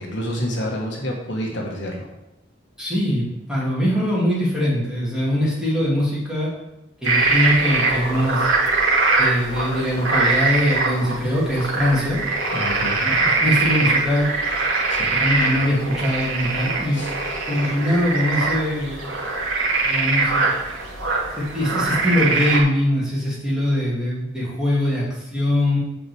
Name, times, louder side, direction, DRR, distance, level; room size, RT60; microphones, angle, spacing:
voice 1, 0.0-2.1 12.5-13.0 14.9-15.1 16.9-17.1, equal, 60° left, -1 dB, 1.5 m, -28 dB
voice 2, 2.8-6.5 7.0-8.5 9.2-12.2 12.9-14.3 15.1-17.1 17.5-19.1 19.8-20.5 21.4-25.8, left 1 dB, 5° right, -7 dB, 2.7 m, -22 dB
sound 1, 7.0-22.6, right 3 dB, 85° right, 1.9 m, -22 dB
7.6 x 4.8 x 7.0 m, 0.90 s
head